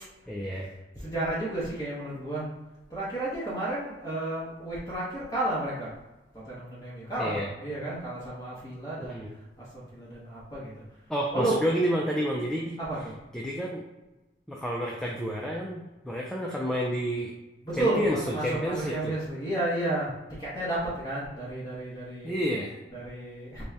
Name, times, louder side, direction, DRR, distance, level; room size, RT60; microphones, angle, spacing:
voice 1, 0.3-0.7 7.2-7.5 9.1-9.3 11.1-12.7 13.3-13.8 14.5-15.8 16.0-17.3 17.7-18.2 18.4-19.1 22.2-22.8, equal, 5° left, -2 dB, 0.3 m, -29 dB
voice 2, 0.9-2.5 2.9-5.9 6.4-9.2 9.6-10.8 11.3-11.6 12.8-13.1 17.6-20.1 20.4-22.3 22.9-23.6, right 1 dB, 20° left, -8 dB, 0.9 m, -32 dB
4.0 x 2.1 x 3.4 m, 1.1 s
head